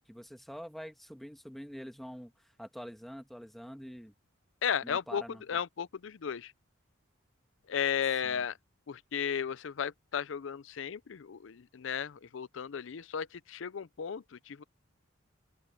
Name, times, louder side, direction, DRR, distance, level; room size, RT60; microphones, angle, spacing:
voice 1, 0.0-4.1 4.8-5.4 8.2-8.4, equal, ahead, 1.4 m, -46 dB
voice 2, 4.6-6.5 7.7-8.6 8.9-14.6, left 7 dB, 70° left, 0.5 m, -35 dB
open air
head